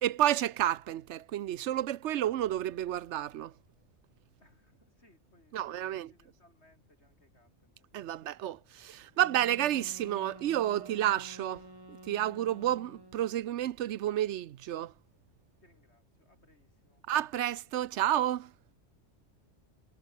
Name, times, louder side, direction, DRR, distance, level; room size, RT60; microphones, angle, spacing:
voice 1, 0.0-3.5 5.5-6.1 7.9-14.9 17.1-18.5, right 12 dB, 75° right, 0.9 m, -30 dB
sound 1, 2.2-4.9, right 2 dB, 50° right, 4.6 m, -67 dB
voice 2, 4.4-8.2 15.6-17.1, left 1 dB, 60° left, 6.4 m, -66 dB
sound 2, 9.1-13.3, right 1 dB, 20° right, 4.2 m, -51 dB
omnidirectional pair, 1.2 m